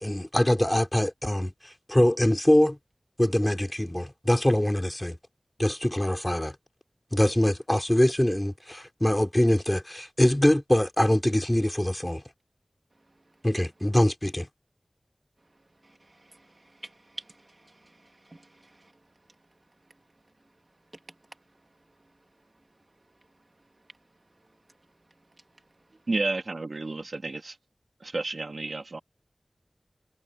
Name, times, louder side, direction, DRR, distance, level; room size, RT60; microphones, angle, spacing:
voice 1, 0.0-2.8 3.2-5.2 5.6-6.5 7.1-12.2 13.4-14.5, left 1 dB, 15° left, 3.3 m, -23 dB
voice 2, 15.8-18.9, right 2 dB, 40° right, 1.4 m, -49 dB
voice 3, 26.1-27.6 28.0-29.0, right 3 dB, 70° right, 2.6 m, -31 dB
wide cardioid pair, 70°, 0 cm